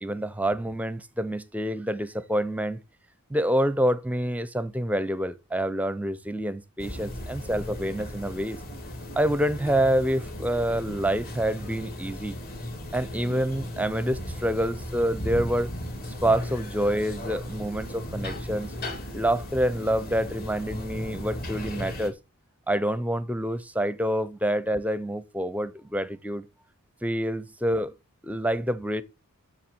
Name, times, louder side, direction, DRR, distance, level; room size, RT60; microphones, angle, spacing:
voice 1, 0.0-2.8 3.3-8.6 9.2-12.3 12.9-15.7 16.2-18.7 19.1-22.2 22.7-26.5 27.0-27.9 28.2-29.0, equal, 5° right, 0.6 m, -27 dB
sound 1, 6.8-22.1, left 1 dB, 45° left, 3.1 m, -36 dB
7.2 x 6.8 x 7.8 m
head